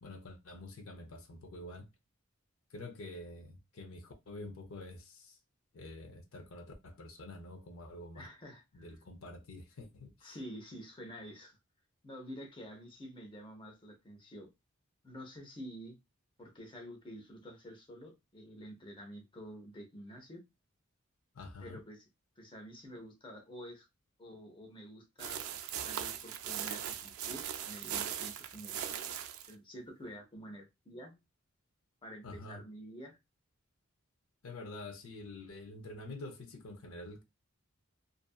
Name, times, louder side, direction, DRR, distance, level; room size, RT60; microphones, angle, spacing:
voice 1, 0.0-1.9 2.7-5.4 5.7-8.3 8.7-10.4 21.3-21.8 32.2-32.6 34.4-37.2, left 2 dB, 80° left, 0.6 m, -47 dB
voice 2, 8.1-8.9 10.2-11.6 12.0-14.5 15.0-16.0 16.4-20.4 21.6-22.0 22.4-23.9 24.2-25.4 25.8-28.9 29.5-31.2 32.0-33.2, equal, 25° left, 0.6 m, -49 dB
sound 1, 25.2-29.5, right 9 dB, 85° right, 0.4 m, -39 dB
2.6 x 2.4 x 2.3 m
head